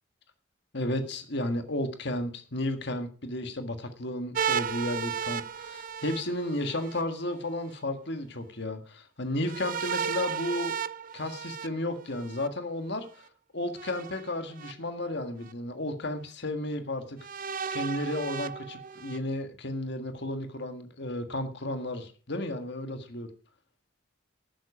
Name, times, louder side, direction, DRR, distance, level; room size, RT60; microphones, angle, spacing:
voice 1, 0.7-10.8 11.1-13.2 13.5-17.2 17.7-23.3, left 1 dB, 60° left, 7 dB, 1.7 m, -33 dB
sound 1, 4.3-7.0 9.4-12.5 13.8-14.7 15.5-15.6 17.2-19.2, right 7 dB, 45° right, 0.5 m, -34 dB
12.0 x 9.5 x 4.9 m, 0.38 s
head